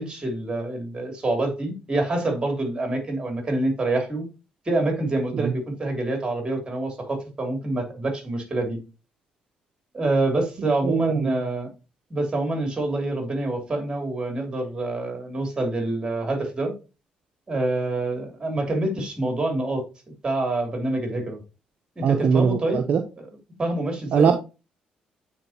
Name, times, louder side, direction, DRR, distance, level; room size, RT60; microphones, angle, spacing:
voice 1, 0.0-4.2 4.6-8.8 9.9-11.7 12.1-16.7 17.5-19.8 20.2-21.4 22.0-22.8 23.2-23.3 23.6-24.3, right 2 dB, 30° right, 2.9 m, -26 dB
voice 2, 10.8-11.4 22.0-23.0 24.1-24.3, right 6 dB, 60° right, 0.6 m, -21 dB
8.8 x 4.3 x 2.9 m
supercardioid pair, 65°, 3 cm